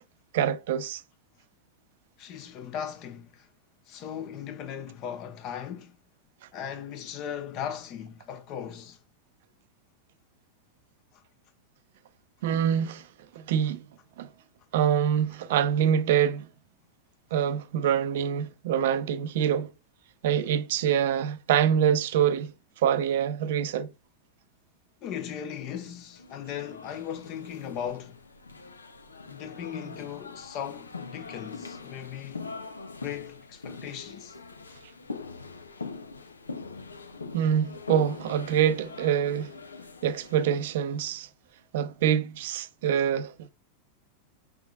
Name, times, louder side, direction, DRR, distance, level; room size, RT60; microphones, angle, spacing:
voice 1, 0.3-1.0 12.4-13.1 13.3-13.9 14.2-14.3 14.7-16.5 17.3-19.7 20.2-23.9 37.3-39.5 40.0-41.3 41.7-43.5, right 9 dB, 65° right, 0.5 m, -25 dB
voice 2, 2.2-3.5 3.9-6.0 6.5-9.0 25.0-28.2 29.3-32.4 33.0-34.4, left 9 dB, 45° left, 1.0 m, -37 dB
sound 1, 26.1-40.8, left 4 dB, 90° left, 0.5 m, -42 dB
5.0 x 3.5 x 2.3 m
hypercardioid pair, 95°, 0 cm